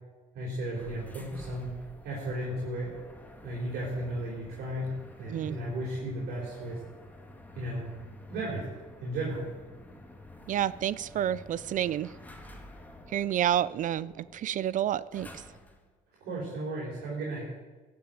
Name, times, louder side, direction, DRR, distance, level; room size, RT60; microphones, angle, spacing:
voice 1, 0.3-1.7 2.0-2.9 3.4-4.9 5.2-6.8 7.6-7.9 8.3-8.6 9.0-9.5 16.2-17.5, right 1 dB, 75° right, -5 dB, 4.4 m, -34 dB
sound 1, 0.7-15.9, left 1 dB, 10° left, 1.7 m, -49 dB
voice 2, 10.5-12.1 13.1-15.4, right 11 dB, 50° right, 18 dB, 0.4 m, -29 dB
15.0 x 6.9 x 9.2 m, 1.4 s
cardioid pair, 110°, 17 cm